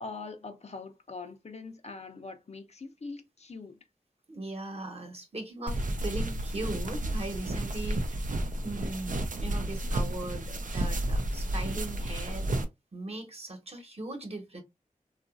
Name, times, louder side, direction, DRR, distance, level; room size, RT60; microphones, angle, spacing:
voice 1, 0.0-3.8, left 3 dB, 50° left, 0.6 m, -42 dB
voice 2, 4.3-12.4 12.9-14.6, right 2 dB, 45° right, 1.1 m, -39 dB
sound 1, 5.7-12.6, right 1 dB, 65° right, 0.6 m, -31 dB
2.9 x 2.4 x 2.5 m
cardioid pair, 45°, 15 cm